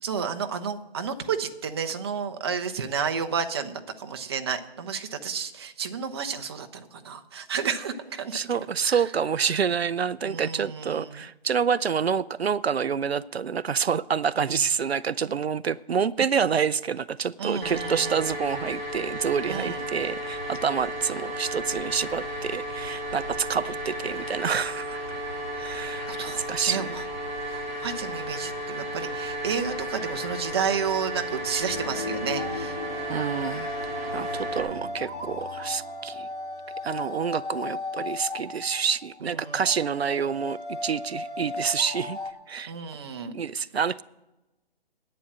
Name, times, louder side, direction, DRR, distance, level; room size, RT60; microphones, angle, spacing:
voice 1, 0.0-9.0 10.2-11.2 17.4-18.2 19.4-19.9 26.1-27.0 27.5-32.8 39.2-39.6 42.7-43.3, right 6 dB, 25° right, 6 dB, 0.7 m, -31 dB
voice 2, 8.3-25.0 25.5-26.1 26.5-26.9 33.1-36.3 36.8-42.2 42.5-42.7 43.3-44.0, right 6 dB, 75° right, 15 dB, 0.5 m, -27 dB
sound 1, 17.6-34.6, right 1 dB, 65° left, 4.0 m, -34 dB
sound 2, 31.3-42.3, left 2 dB, 10° left, 1.0 m, -37 dB
sound 3, 31.7-37.1, left 3 dB, 30° left, 1.9 m, -40 dB
11.0 x 8.6 x 7.3 m, 1.0 s
figure-of-eight pair, 145°, 31 cm